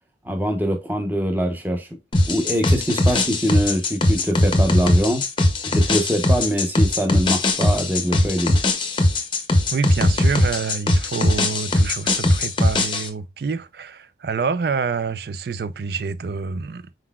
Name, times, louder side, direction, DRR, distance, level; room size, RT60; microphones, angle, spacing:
voice 1, 0.2-1.9 2.3-5.2 5.7-8.6, equal, 10° right, 0.7 m, -23 dB
sound 1, 2.1-13.1, left 1 dB, 30° left, 0.6 m, -20 dB
voice 2, 9.7-16.8, right 5 dB, 60° right, 0.4 m, -27 dB
4.4 x 3.9 x 2.3 m
head